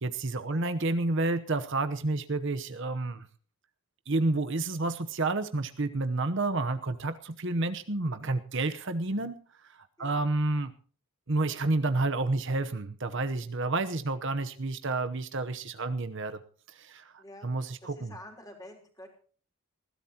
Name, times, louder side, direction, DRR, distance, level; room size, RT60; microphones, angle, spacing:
voice 1, 0.0-3.3 4.1-9.3 10.0-10.7 11.3-16.4 16.8-18.1, right 2 dB, 55° right, 9 dB, 0.9 m, -30 dB
voice 2, 17.2-17.5 17.8-19.1, left 1 dB, 15° left, 2 dB, 3.9 m, -48 dB
20.5 x 16.0 x 2.9 m, 0.42 s
head